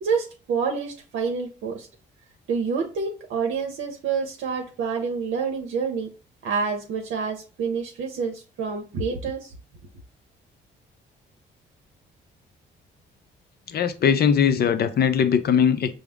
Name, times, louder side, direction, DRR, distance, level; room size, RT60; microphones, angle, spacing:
voice 1, 0.0-1.9 2.5-6.1 6.4-9.5, right 5 dB, 80° right, 0.7 m, -28 dB
voice 2, 13.7-15.9, left 7 dB, 55° left, 0.5 m, -20 dB
5.0 x 2.0 x 3.4 m
cardioid pair, 90°, 20 cm